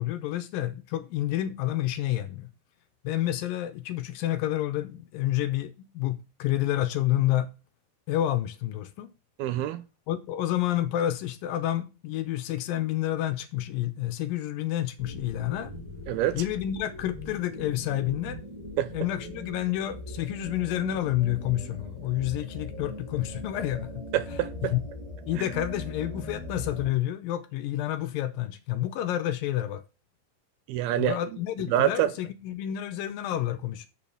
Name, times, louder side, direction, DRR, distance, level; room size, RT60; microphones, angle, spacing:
voice 1, 0.0-2.5 3.0-7.5 8.1-9.1 10.1-15.7 16.3-18.4 18.9-24.0 24.7-24.8 25.3-29.9 31.0-33.9, left 13 dB, 75° left, 2.2 m, -29 dB
voice 2, 9.4-9.8 16.1-16.4 18.8-18.9 24.1-24.7 30.7-31.2 31.7-32.1, right 12 dB, 85° right, 2.6 m, -26 dB
sound 1, 15.0-26.9, left 1 dB, 20° right, 0.9 m, -40 dB
7.1 x 5.6 x 6.5 m
omnidirectional pair, 4.5 m